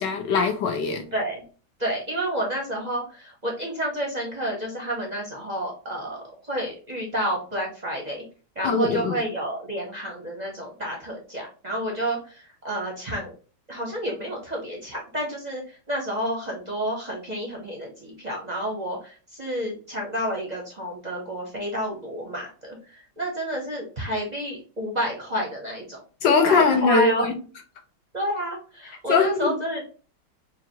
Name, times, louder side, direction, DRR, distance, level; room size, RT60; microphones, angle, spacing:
voice 1, 0.0-1.1 8.6-9.2 26.2-27.3 29.1-29.5, left 4 dB, 70° left, 1.2 m, -21 dB
voice 2, 1.1-1.4 1.8-8.2 8.5-13.3 13.7-26.0 26.2-27.3 28.1-29.8, right 1 dB, 30° right, 0.8 m, -30 dB
5.8 x 2.5 x 2.8 m
omnidirectional pair, 2.3 m